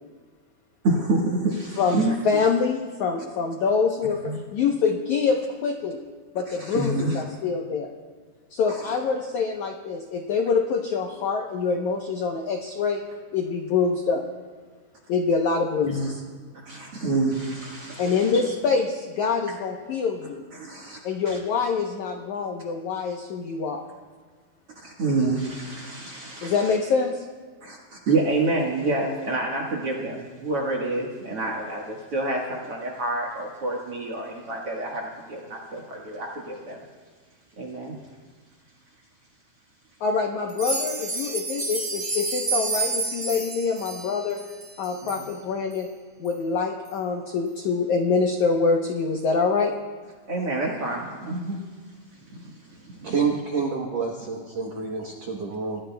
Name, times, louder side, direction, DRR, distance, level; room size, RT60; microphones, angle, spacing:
voice 1, 0.8-2.2 4.2-4.4 6.5-7.2 8.7-8.8 15.8-16.1 16.6-18.5 20.5-21.0 21.3-21.4 24.7-26.6 27.6-36.8 37.6-38.0 45.0-45.1 50.3-51.6 52.2-53.2, right 2 dB, 55° right, -2 dB, 1.6 m, -28 dB
voice 2, 1.8-6.0 6.3-7.9 8.5-13.0 13.3-14.2 15.1-16.2 18.0-20.4 21.0-23.8 26.4-27.2 40.0-44.4 44.8-45.9 46.2-49.7, left 5 dB, 85° left, 3 dB, 1.6 m, -25 dB
sound 1, 40.5-45.2 45.7-45.8 46.2-46.3 46.8-46.9, right 3 dB, 20° right, 1.9 m, -30 dB
voice 3, 53.0-55.8, right 5 dB, 80° right, 1 dB, 1.5 m, -28 dB
30.0 x 17.5 x 2.3 m, 1.5 s
omnidirectional pair, 4.8 m